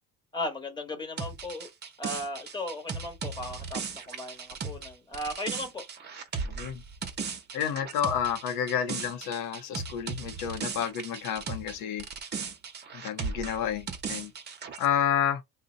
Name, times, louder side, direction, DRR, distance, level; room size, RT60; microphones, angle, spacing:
voice 1, 0.3-1.7 2.0-5.8, left 1 dB, 15° left, 1.0 m, -36 dB
sound 1, 1.2-11.7 12.0-14.9, right 5 dB, 30° right, 0.7 m, -37 dB
voice 2, 6.4-6.8 7.5-12.1 12.9-14.3 14.8-15.4, left 9 dB, 85° left, 0.6 m, -30 dB
2.6 x 2.1 x 3.8 m
cardioid pair, 120°, 34 cm